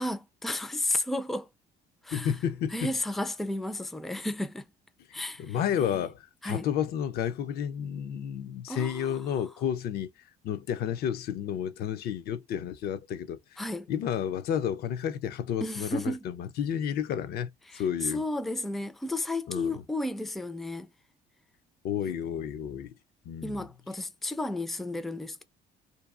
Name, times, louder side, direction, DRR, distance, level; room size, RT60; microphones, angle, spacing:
voice 1, 0.0-1.5 2.0-2.3 2.7-4.6 5.1-6.0 6.4-6.7 8.7-9.5 13.6-13.9 15.6-16.2 17.7-20.9 23.4-25.4, left 2 dB, ahead, 0.3 m, -33 dB
voice 2, 2.1-2.9 5.4-10.1 10.4-13.6 13.9-18.2 19.5-19.8 21.8-22.9 23.3-23.7, left 9 dB, 65° left, 0.4 m, -31 dB
2.7 x 2.3 x 2.3 m
cardioid pair, 110°, 17 cm